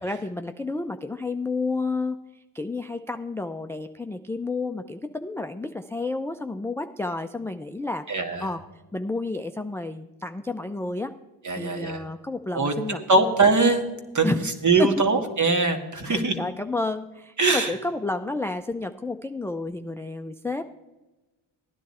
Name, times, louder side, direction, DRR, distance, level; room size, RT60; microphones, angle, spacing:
voice 1, 0.0-8.6 8.9-11.1 11.6-13.0 14.2-14.4 14.8-14.9 16.1-20.6, left 3 dB, 5° left, 8 dB, 0.4 m, -31 dB
voice 2, 8.1-8.5 11.4-12.0 12.5-12.7 13.1-13.8 14.1-16.4 17.4-17.7, right 3 dB, 40° right, 6 dB, 1.8 m, -22 dB
14.5 x 10.0 x 4.3 m, 1.1 s
cardioid pair, 75°, 47 cm